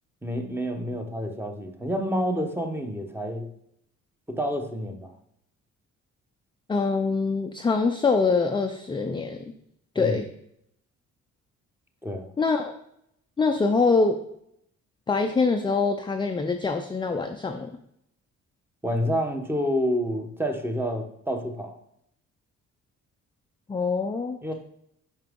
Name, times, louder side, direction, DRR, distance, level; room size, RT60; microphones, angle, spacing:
voice 1, 0.2-3.5 4.3-5.1 10.0-10.2 12.0-12.3 18.8-21.8 24.4-24.5, equal, 5° right, 4 dB, 0.9 m, -28 dB
voice 2, 6.7-9.4 9.9-10.3 12.4-12.7 13.4-14.2 15.1-17.7 23.7-24.5, left 4 dB, 15° left, 5 dB, 0.4 m, -24 dB
5.7 x 4.7 x 3.6 m, 0.75 s
cardioid pair, 90°, 30 cm